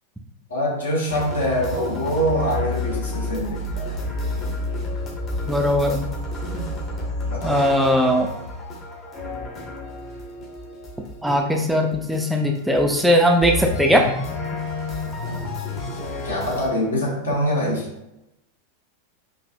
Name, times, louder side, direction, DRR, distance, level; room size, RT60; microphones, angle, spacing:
voice 1, 0.5-3.9 6.5-6.7 7.3-7.5 15.3-15.5 16.2-17.9, equal, 70° left, -3 dB, 1.3 m, -24 dB
sound 1, 1.1-16.7, left 2 dB, 30° left, 0.9 m, -30 dB
voice 2, 5.5-6.1 7.4-8.3 11.2-14.0, equal, 5° right, 2 dB, 0.4 m, -19 dB
4.7 x 2.6 x 2.6 m, 0.90 s
figure-of-eight pair, 90°, 0 cm